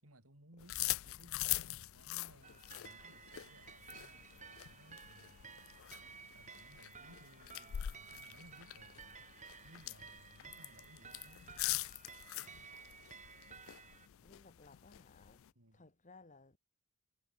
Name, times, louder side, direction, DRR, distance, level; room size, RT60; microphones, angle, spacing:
voice 1, 0.0-5.5 6.3-9.3 9.6-11.5 15.6-15.9, right 1 dB, 70° right, 5.6 m, -62 dB
sound 1, 0.6-15.5, left 16 dB, 65° left, 0.4 m, -44 dB
sound 2, 2.4-14.1, right 6 dB, 35° right, 4.1 m, -55 dB
voice 2, 14.2-15.4 15.7-16.6, left 3 dB, 35° left, 2.1 m, -60 dB
head